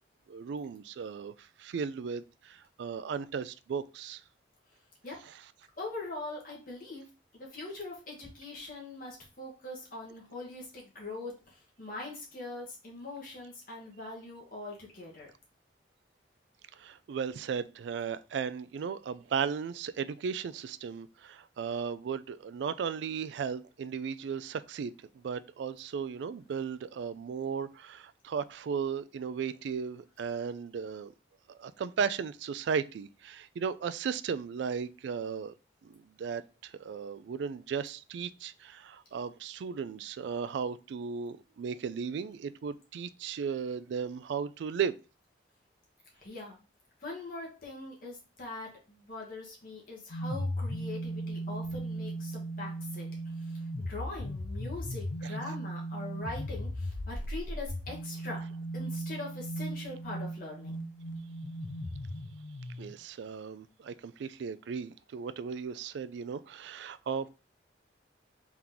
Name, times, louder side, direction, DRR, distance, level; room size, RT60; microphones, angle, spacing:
voice 1, 0.3-4.2 16.8-31.1 31.6-35.5 35.8-45.0 55.2-55.3 62.8-67.3, right 6 dB, 70° right, 0.3 m, -36 dB
voice 2, 5.8-7.0 7.3-15.3 46.1-46.6 47.0-58.4 58.7-60.8, left 2 dB, 45° left, 1.3 m, -42 dB
sound 1, 50.1-62.9, right 1 dB, 80° left, 0.6 m, -37 dB
3.5 x 2.9 x 3.8 m
head